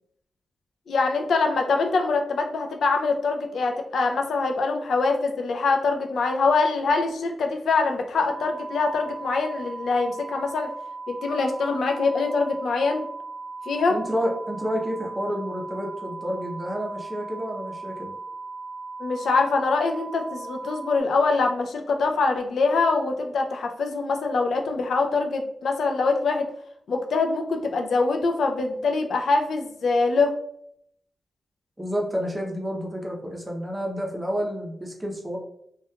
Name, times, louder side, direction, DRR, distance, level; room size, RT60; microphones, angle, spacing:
voice 1, 0.9-10.7 11.1-13.0 13.7-14.0 19.0-26.5 26.9-30.3, left 4 dB, 80° left, 3 dB, 0.3 m, -24 dB
sound 1, 8.2-21.0, right 3 dB, 40° left, 1.0 m, -38 dB
voice 2, 13.9-18.1 31.8-35.4, equal, 15° right, 0 dB, 0.6 m, -29 dB
2.8 x 2.2 x 2.2 m, 0.71 s
cardioid pair, 80°, 0 cm